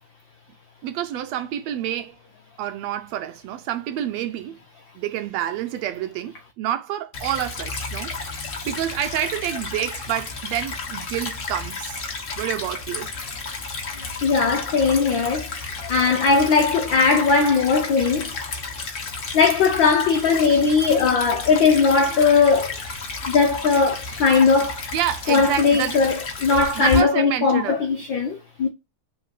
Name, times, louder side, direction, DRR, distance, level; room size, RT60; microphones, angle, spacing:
voice 1, 0.8-2.1 2.6-4.6 5.0-12.1 12.4-13.1 24.9-26.0 26.8-27.8, right 11 dB, 80° right, 1.6 m, -28 dB
Stream / Trickle dribble, 7.1-27.0, left 3 dB, 55° left, 0.8 m, -32 dB
voice 2, 14.2-18.3 19.3-22.9 23.3-24.8 25.3-28.7, left 5 dB, 80° left, 1.0 m, -19 dB
5.4 x 4.5 x 5.9 m
omnidirectional pair, 3.4 m